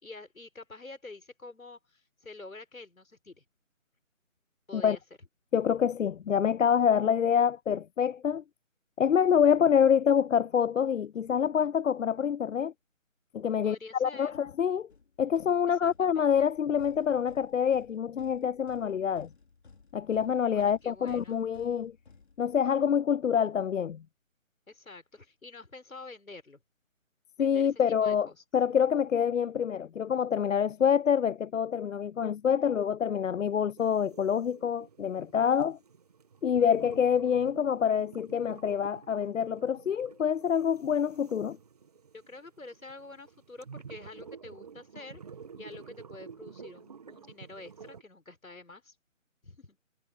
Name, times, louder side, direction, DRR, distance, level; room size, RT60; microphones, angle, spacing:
voice 1, 0.0-3.4 4.7-5.0 13.6-14.3 15.8-16.5 20.5-21.4 24.7-26.6 27.4-28.4 42.3-45.2 45.6-49.0 49.4-49.8, left 3 dB, 90° left, 5.2 m, -48 dB
voice 2, 5.5-8.4 9.0-12.7 13.3-14.9 15.2-19.3 19.9-21.9 22.4-24.0 27.4-28.3 28.5-35.8 36.4-41.6, left 8 dB, 65° left, 0.5 m, -26 dB
sound 1, 14.9-22.9, left 4 dB, 50° left, 3.7 m, -58 dB
sound 2, 33.8-48.0, right 6 dB, 30° right, 1.8 m, -50 dB
figure-of-eight pair, 170°, 40 cm